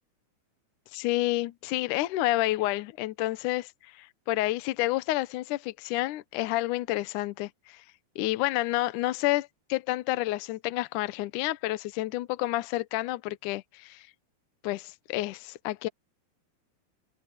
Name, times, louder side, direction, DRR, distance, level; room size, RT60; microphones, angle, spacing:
voice 1, 0.9-7.8 8.1-14.1 14.6-15.9, left 17 dB, 85° left, 1.7 m, -29 dB
omnidirectional pair, 4.8 m